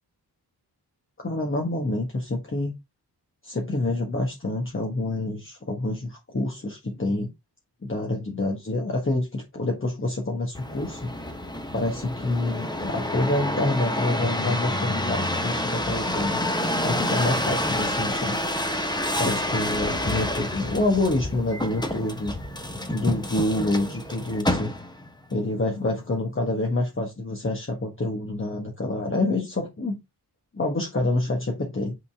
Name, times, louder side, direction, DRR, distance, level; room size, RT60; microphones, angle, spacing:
voice 1, 1.2-2.7 3.4-7.3 7.8-11.1 11.7-16.4 16.8-18.4 19.2-22.3 22.9-24.7 25.3-30.0 30.5-32.0, left 2 dB, 30° left, 0 dB, 1.5 m, -27 dB
sound 1, 10.5-25.1 25.7-26.2, left 1 dB, 10° left, 1.1 m, -28 dB
8.3 x 3.9 x 3.6 m, 0.21 s
wide cardioid pair, 115°, 41 cm